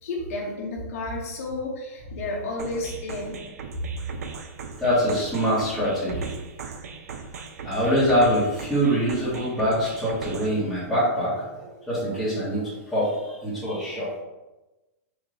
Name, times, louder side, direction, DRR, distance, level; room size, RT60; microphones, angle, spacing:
voice 1, 0.0-3.5 7.3-7.5, left 2 dB, 65° left, -2 dB, 0.8 m, -32 dB
sound 1, 2.6-10.6, right 5 dB, 85° right, 0.5 m, -39 dB
voice 2, 4.7-6.3 7.6-14.1, equal, ahead, -13 dB, 1.4 m, -24 dB
3.2 x 2.9 x 3.8 m, 1.1 s
hypercardioid pair, 150°, 8 cm